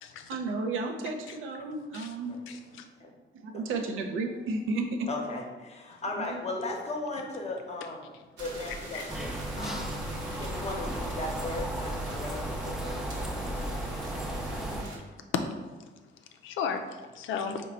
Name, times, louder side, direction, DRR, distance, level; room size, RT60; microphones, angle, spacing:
voice 1, 0.3-2.4 3.3-5.1 6.2-6.4, right 3 dB, 90° right, 4 dB, 0.5 m, -33 dB
voice 2, 5.1-8.1 8.4-10.0 10.4-13.0, left 2 dB, 35° left, 1 dB, 0.8 m, -37 dB
sound 1, 8.4-15.0, right 1 dB, 70° right, 0.9 m, -44 dB
sound 2, 9.1-14.8, right 1 dB, ahead, 0.4 m, -34 dB
voice 3, 16.4-17.6, left 6 dB, 85° left, 7 dB, 0.4 m, -34 dB
3.9 x 2.2 x 4.1 m, 1.3 s
cardioid pair, 90°, 20 cm